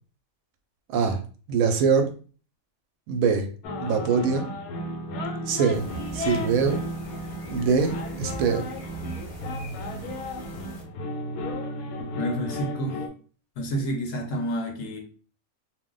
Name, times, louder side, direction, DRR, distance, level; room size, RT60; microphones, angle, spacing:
voice 1, 0.9-1.2 1.5-2.1 3.1-3.5 3.8-4.5 5.5-5.9 6.1-6.9 7.5-8.7, right 5 dB, 75° right, 6 dB, 1.0 m, -23 dB
sound 1, 3.6-13.1, left 1 dB, 90° left, 1.1 m, -34 dB
sound 2, 5.7-10.8, right 2 dB, 35° left, 0.5 m, -42 dB
voice 2, 12.2-13.0 13.6-15.0, right 1 dB, 70° left, 3 dB, 1.0 m, -29 dB
2.5 x 2.1 x 3.7 m, 0.39 s
omnidirectional pair, 1.5 m